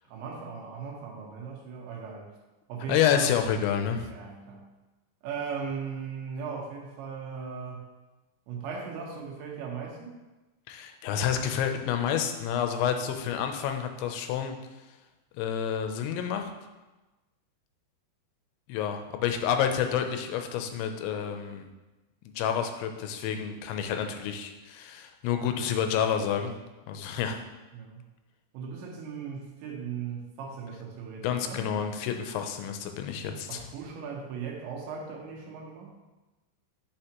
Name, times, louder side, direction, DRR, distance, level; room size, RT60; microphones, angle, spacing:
voice 1, 0.0-2.3 2.7-3.3 4.1-4.7 5.2-7.9 8.5-10.2 27.7-28.0 28.5-31.7 33.5-35.9, right 6 dB, 85° right, -1 dB, 3.6 m, -38 dB
voice 2, 2.9-4.1 10.7-14.5 15.3-16.5 18.7-21.7 22.3-26.5 26.9-27.4 31.2-33.7, left 8 dB, 90° left, 6 dB, 3.1 m, -29 dB
9.8 x 7.0 x 3.0 m, 1.1 s
omnidirectional pair, 5.1 m